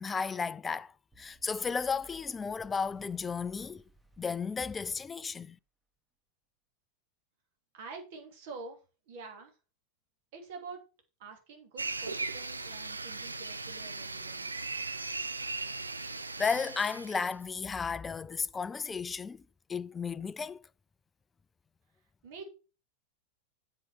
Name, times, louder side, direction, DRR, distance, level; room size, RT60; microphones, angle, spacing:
voice 1, 0.0-3.8 4.2-5.6 16.0-16.1 16.4-19.4 19.7-20.6, left 5 dB, 15° left, 0.4 m, -34 dB
sound 1, 1.1-5.2, equal, 10° right, 1.6 m, -61 dB
voice 2, 7.7-8.8 9.1-9.5 10.3-10.8 11.2-14.5 22.2-22.5, right 4 dB, 50° right, 2.8 m, -47 dB
sound 2, 11.8-17.3, right 3 dB, 80° right, 0.6 m, -38 dB
7.8 x 6.8 x 4.5 m
figure-of-eight pair, 90°, 0 cm